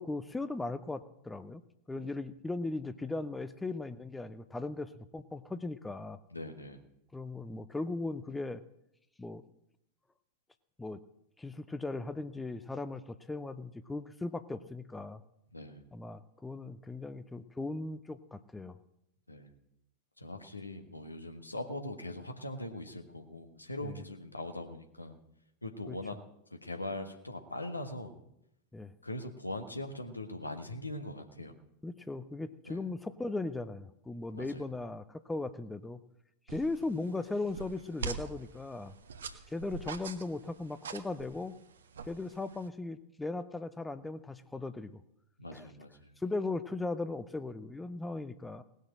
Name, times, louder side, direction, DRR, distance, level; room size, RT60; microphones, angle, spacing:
voice 1, 0.0-1.6 1.9-6.2 7.1-8.6 9.2-9.4 10.8-11.0 11.4-15.2 15.9-18.8 23.8-24.0 25.9-26.0 28.7-28.9 31.8-36.0 36.5-38.9 39.5-41.5 42.0-45.0 45.5-45.7 46.2-48.6, left 2 dB, 10° left, 12 dB, 0.6 m, -38 dB
voice 2, 6.3-6.8 15.5-15.8 19.3-19.5 20.2-25.2 25.6-26.2 26.5-28.2 29.0-31.5 32.7-32.8 34.3-34.6 45.4-46.1, left 1 dB, 85° left, 5 dB, 1.6 m, -41 dB
sound 1, 36.5-42.7, right 5 dB, 65° right, 1.2 m, -44 dB
18.5 x 6.4 x 8.8 m, 0.82 s
figure-of-eight pair, 90°, 0 cm